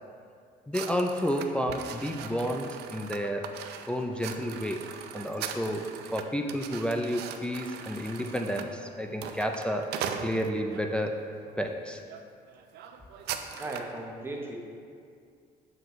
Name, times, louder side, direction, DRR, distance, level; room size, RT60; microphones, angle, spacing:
voice 1, 0.7-3.4 3.9-4.8 5.1-11.2 11.6-12.0, equal, 5° left, 2 dB, 0.3 m, -31 dB
sound 1, 0.7-10.9 11.5-11.7 12.1-12.2 12.5-14.0, right 8 dB, 75° right, 0.4 m, -40 dB
voice 2, 13.5-14.6, right 2 dB, 15° right, 0 dB, 0.9 m, -37 dB
7.5 x 4.9 x 3.0 m, 2.2 s
cardioid pair, 110°, 17 cm